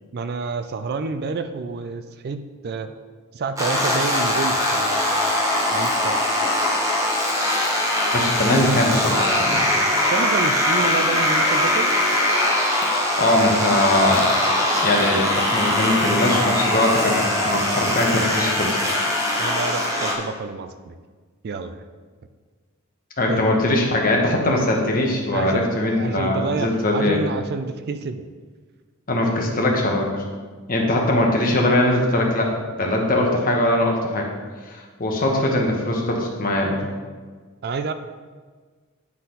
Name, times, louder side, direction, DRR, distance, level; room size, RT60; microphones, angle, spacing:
voice 1, 0.1-2.9 3.3-5.3 5.7-6.3 10.0-11.9 19.4-21.0 21.4-21.9 23.3-23.5 25.3-25.7 26.0-28.2 37.6-37.9, right 4 dB, 50° right, 10 dB, 0.4 m, -29 dB
sound 1, 3.6-20.2, left 1 dB, 15° right, 1.1 m, -21 dB
voice 2, 8.1-9.6 12.8-14.3 14.8-18.8 23.2-27.2 29.1-30.2 30.7-34.3 34.6-36.8, left 1 dB, 40° left, 0 dB, 1.2 m, -21 dB
9.6 x 4.1 x 4.0 m, 1.5 s
head